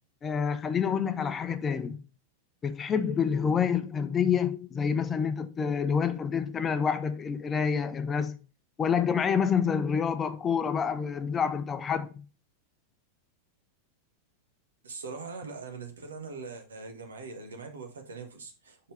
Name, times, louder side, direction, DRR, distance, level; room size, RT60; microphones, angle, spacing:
voice 1, 0.2-2.0 2.6-8.4 8.8-12.1, left 7 dB, 20° left, 0.8 m, -27 dB
voice 2, 14.8-18.8, right 4 dB, 70° right, 1.6 m, -41 dB
5.8 x 5.7 x 3.3 m
figure-of-eight pair, 90°, 0 cm